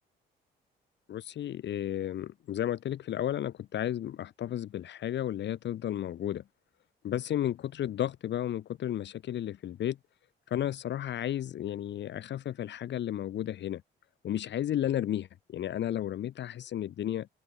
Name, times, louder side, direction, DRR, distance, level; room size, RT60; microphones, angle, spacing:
voice 1, 1.1-6.4 7.0-10.0 10.5-13.8 14.2-17.3, left 11 dB, 65° left, 1.0 m, -33 dB
cardioid pair, 90°, 20 cm